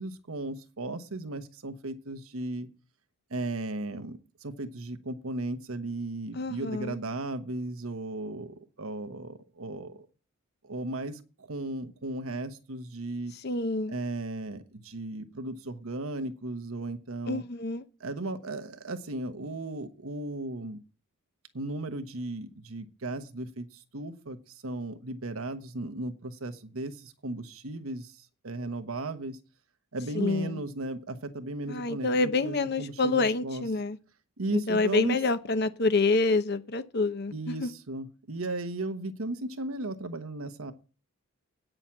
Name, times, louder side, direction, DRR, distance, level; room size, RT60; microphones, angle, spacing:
voice 1, 0.0-2.7 3.3-10.1 10.6-13.3 13.9-17.4 18.0-20.8 21.5-29.4 29.9-33.6 34.4-35.2 37.3-40.7, right 2 dB, 90° right, 1.1 m, -36 dB
voice 2, 6.3-7.0 13.4-13.9 17.3-17.8 30.1-30.6 31.7-34.0 34.5-37.7, left 3 dB, 50° left, 0.8 m, -27 dB
9.1 x 6.4 x 7.3 m
head